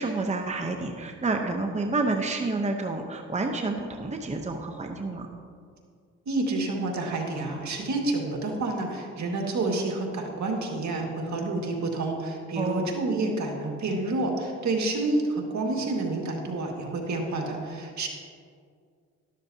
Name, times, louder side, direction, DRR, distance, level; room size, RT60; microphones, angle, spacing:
voice 1, 0.0-5.3 12.6-12.9, right 3 dB, 20° right, 3 dB, 0.9 m, -29 dB
voice 2, 6.3-18.1, right 2 dB, 65° right, 0 dB, 2.0 m, -29 dB
12.5 x 12.0 x 2.8 m, 2.2 s
cardioid pair, 75°, 31 cm